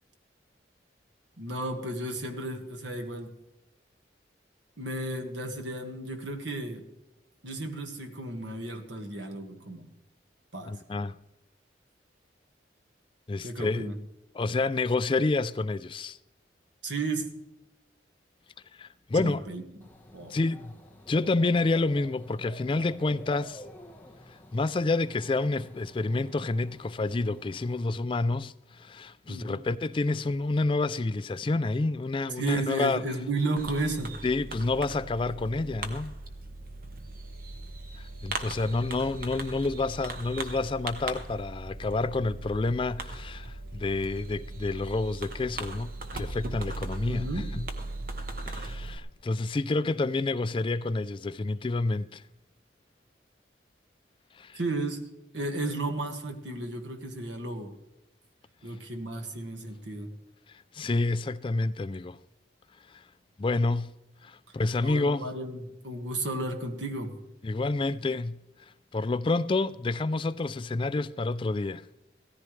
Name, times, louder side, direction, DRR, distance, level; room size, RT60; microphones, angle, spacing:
voice 1, 1.4-3.3 4.8-6.9 7.4-9.9 10.5-11.0 13.4-13.9 16.8-17.2 19.1-19.6 20.1-20.3 29.3-29.6 32.4-34.2 47.0-47.5 54.6-55.0 55.3-57.7 58.6-60.1 64.8-67.2, right 2 dB, 80° right, 1.7 m, -33 dB
voice 2, 10.7-11.1 13.3-13.9 14.3-16.2 18.7-19.4 20.3-20.8 21.1-23.6 24.3-33.0 34.2-36.1 38.0-47.3 47.5-47.6 48.5-52.2 54.3-54.6 60.5-62.2 62.9-63.0 63.4-63.9 64.2-65.3 67.4-68.4 68.9-71.9, left 3 dB, 25° left, 0.3 m, -29 dB
Dog / Bird, 19.8-27.8, equal, 10° left, 1.1 m, -49 dB
Fireworks, 33.6-49.0, right 2 dB, 50° right, 1.2 m, -39 dB
17.0 x 14.0 x 3.2 m
head